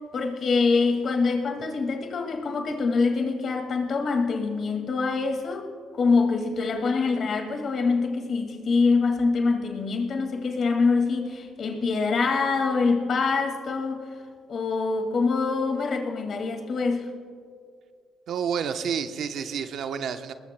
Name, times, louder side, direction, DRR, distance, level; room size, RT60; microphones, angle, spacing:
voice 1, 0.1-14.0 14.5-17.1, left 4 dB, 55° left, 2.0 m, -25 dB
voice 2, 18.3-20.3, right 7 dB, 70° right, 0.8 m, -29 dB
22.5 x 20.0 x 2.2 m
cardioid pair, 90°, 0 cm